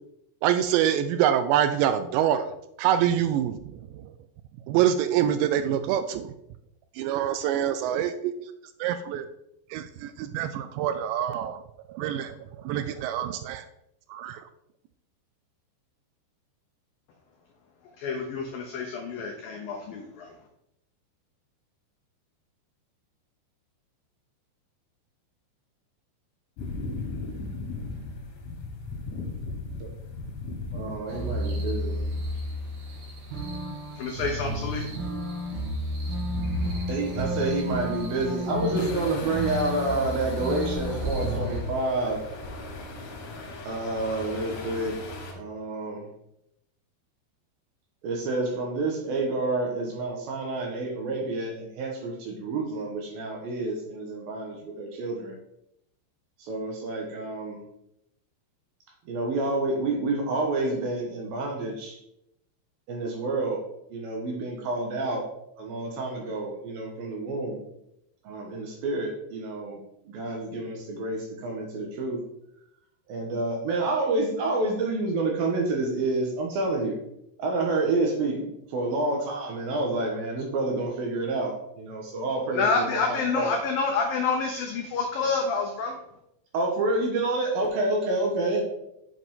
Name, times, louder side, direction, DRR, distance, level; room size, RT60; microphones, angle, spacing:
voice 1, 0.4-2.5 2.8-3.8 4.7-6.3 7.0-8.5 8.8-9.3 9.7-11.6 11.9-13.6 14.1-14.4, right 10 dB, 85° right, 10 dB, 2.6 m, -25 dB
voice 2, 17.8-20.4 33.9-34.9 82.5-86.0, left 4 dB, 90° left, 2 dB, 2.0 m, -28 dB
sound 1, 26.6-45.3, left 3 dB, 75° left, 4.1 m, -39 dB
voice 3, 30.7-31.9 36.9-42.2 43.7-45.0 45.3-46.1 48.0-55.4 56.4-57.6 59.1-62.0 62.9-63.6 63.9-65.2 65.6-67.6 68.2-69.8 70.1-72.2 73.1-77.0 77.4-83.5 86.5-88.6, right 2 dB, 65° right, 1 dB, 2.6 m, -29 dB
sound 2, 31.1-41.6, equal, 50° right, 2.8 m, -31 dB
8.0 x 7.5 x 3.7 m, 0.80 s
omnidirectional pair, 5.3 m